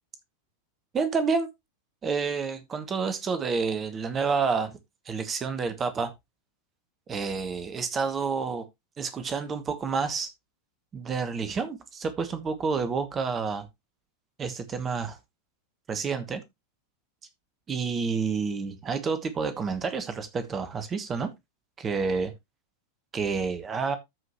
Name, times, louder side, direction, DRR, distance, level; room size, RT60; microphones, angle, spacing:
voice 1, 0.9-1.5 2.0-4.8 5.0-6.1 7.1-8.6 9.0-10.3 10.9-13.7 14.4-15.2 15.9-16.4 17.7-21.3 21.8-22.3 23.1-24.0, right 5 dB, 20° right, 1.3 m, -29 dB
13.5 x 5.0 x 3.0 m
figure-of-eight pair, 90°, 0 cm